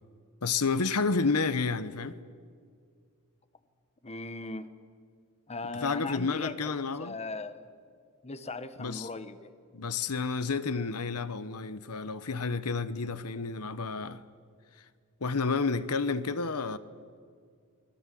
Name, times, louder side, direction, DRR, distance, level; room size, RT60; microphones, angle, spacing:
voice 1, 0.4-2.2 5.8-7.1 8.8-9.1 9.7-14.2 15.2-16.8, left 4 dB, 85° left, 1.1 m, -30 dB
voice 2, 4.0-4.7 5.5-7.7 8.2-9.5, left 3 dB, 30° left, 1.2 m, -39 dB
29.0 x 21.0 x 7.7 m
head